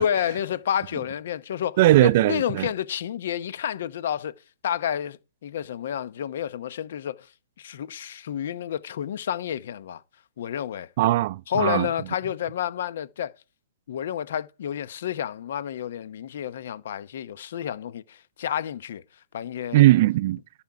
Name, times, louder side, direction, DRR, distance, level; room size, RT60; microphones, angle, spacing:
voice 1, 0.0-4.3 4.6-7.3 7.6-10.0 10.4-10.9 11.5-13.3 13.9-19.0 19.3-19.9, left 9 dB, 60° left, 0.8 m, -30 dB
voice 2, 1.8-2.7 11.0-11.9 19.7-20.4, right 16 dB, 45° right, 0.4 m, -19 dB
11.5 x 6.0 x 4.8 m
hypercardioid pair, 140°, 0 cm